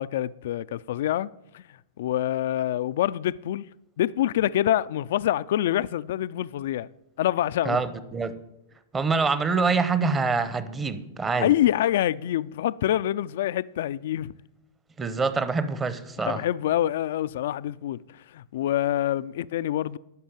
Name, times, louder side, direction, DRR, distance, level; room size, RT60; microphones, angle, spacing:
voice 1, 0.0-1.6 2.0-3.7 4.0-6.9 7.2-7.8 11.4-14.3 16.3-20.0, left 12 dB, 70° left, 0.3 m, -26 dB
voice 2, 7.6-8.3 8.9-11.5 15.0-16.4, right 4 dB, 15° right, 0.9 m, -25 dB
11.5 x 5.7 x 9.0 m
hypercardioid pair, 130°, 0 cm